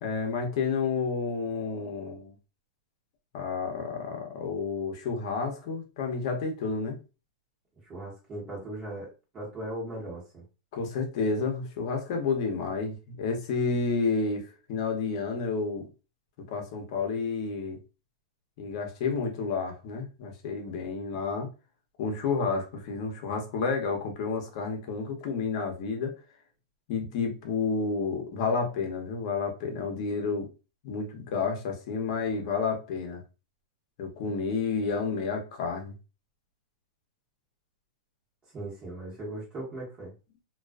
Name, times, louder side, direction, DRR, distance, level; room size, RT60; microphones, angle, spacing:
voice 1, 0.0-2.4 3.3-7.0 10.7-15.8 16.5-17.8 18.6-21.5 22.0-26.2 26.9-30.5 30.8-33.2 34.0-35.9, left 4 dB, 55° left, 0.8 m, -30 dB
voice 2, 7.8-10.4 38.5-40.1, right 1 dB, 25° right, 1.1 m, -38 dB
2.3 x 2.2 x 2.3 m
hypercardioid pair, 140°, 4 cm